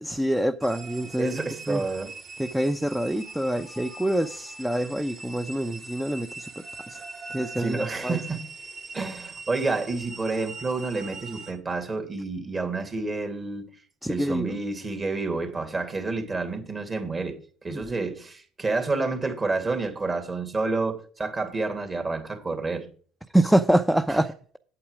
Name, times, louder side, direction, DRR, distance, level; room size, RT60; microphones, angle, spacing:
voice 1, 0.0-1.8 2.4-7.0 7.3-8.2 14.0-14.6 17.7-18.0 23.3-24.3, right 1 dB, 5° right, 0.7 m, -26 dB
sound 1, 0.6-11.5, right 3 dB, 50° right, 3.1 m, -42 dB
voice 2, 1.2-2.1 7.6-8.4 8.9-13.6 14.1-22.9, right 3 dB, 30° right, 2.7 m, -29 dB
8.6 x 8.0 x 4.9 m
hypercardioid pair, 65°, 0 cm